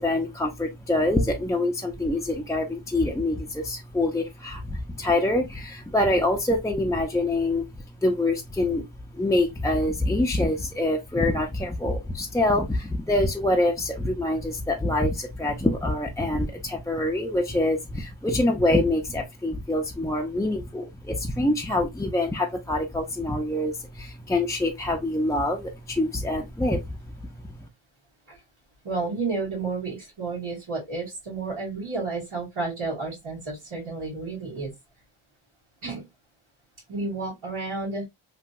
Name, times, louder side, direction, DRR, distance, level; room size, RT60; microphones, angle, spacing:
voice 1, 0.0-7.7 8.0-8.9 9.1-27.0 27.5-27.6, left 1 dB, 10° left, 0.4 m, -25 dB
voice 2, 28.8-34.7 35.8-36.1 36.9-38.1, right 3 dB, 85° right, 1.7 m, -31 dB
3.1 x 2.6 x 2.3 m
cardioid pair, 55°, 49 cm